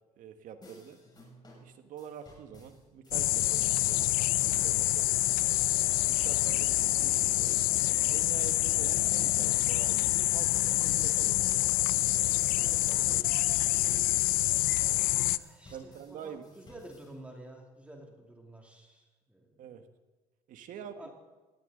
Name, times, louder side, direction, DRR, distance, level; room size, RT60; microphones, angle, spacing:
voice 1, 0.2-1.0 1.4-5.2 5.9-7.6 8.0-11.6 15.7-16.4 19.6-19.9 20.5-21.1, right 8 dB, 65° right, 8 dB, 1.6 m, -46 dB
sound 1, 0.6-17.1, left 1 dB, 30° left, 7.0 m, -56 dB
sound 2, 3.1-15.4, left 18 dB, 70° left, 0.5 m, -27 dB
voice 2, 12.6-13.2 15.0-19.6 20.7-21.1, right 1 dB, 10° right, 0 dB, 2.7 m, -50 dB
19.0 x 17.0 x 3.9 m, 1.3 s
supercardioid pair, 90°, 15 cm